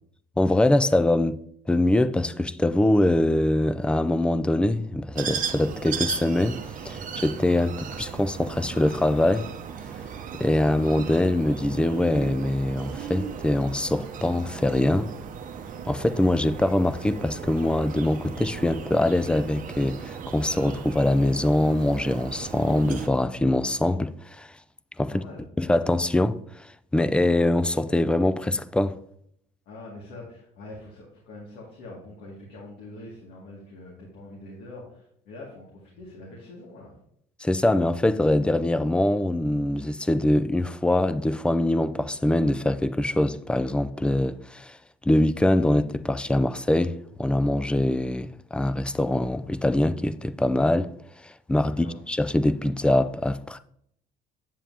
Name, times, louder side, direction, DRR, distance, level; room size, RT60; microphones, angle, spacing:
voice 1, 0.4-1.4 1.7-6.6 6.8-9.5 10.4-15.1 15.9-24.5 25.0-25.2 25.6-29.0 37.4-44.8 45.0-50.9 51.2-53.6, left 1 dB, 5° left, 0.4 m, -23 dB
sound 1, 5.1-23.1, right 7 dB, 50° right, 0.8 m, -36 dB
voice 2, 25.0-25.4 29.7-36.9 51.8-52.0, left 2 dB, 80° left, 2.2 m, -44 dB
8.9 x 7.2 x 2.8 m
cardioid pair, 110°, 17 cm